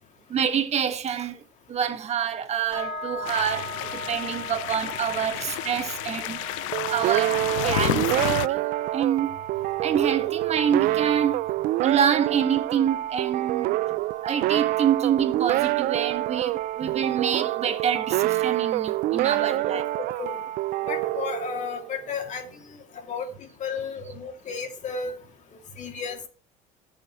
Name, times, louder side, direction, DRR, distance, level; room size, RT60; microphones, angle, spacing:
voice 1, 0.3-1.4 1.7-6.4 6.7-8.7 8.9-9.3 9.8-11.4 11.8-19.9, right 8 dB, 40° right, 1.7 m, -27 dB
sound 1, 2.7-12.8, equal, 5° right, 6.4 m, -40 dB
sound 2, 3.2-8.5, left 18 dB, 90° left, 0.4 m, -31 dB
sound 3, 6.7-22.1, right 16 dB, 60° right, 0.5 m, -26 dB
voice 2, 19.4-20.4 20.9-22.8 23.1-23.3 23.6-25.1 25.8-26.2, left 5 dB, 50° left, 2.6 m, -33 dB
18.5 x 6.6 x 3.1 m
supercardioid pair, 85°, 16 cm